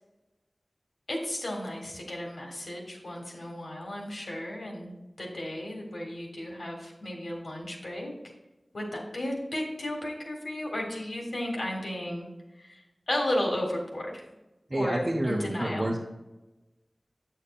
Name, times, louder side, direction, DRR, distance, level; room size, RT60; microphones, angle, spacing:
voice 1, 1.1-8.2 8.7-12.3 12.6-14.2 14.7-15.9, left 1 dB, 80° left, 0 dB, 1.7 m, -34 dB
voice 2, 14.7-16.0, right 1 dB, 45° right, -2 dB, 0.9 m, -28 dB
8.3 x 6.5 x 2.4 m, 1.0 s
wide cardioid pair, 70°, 0 cm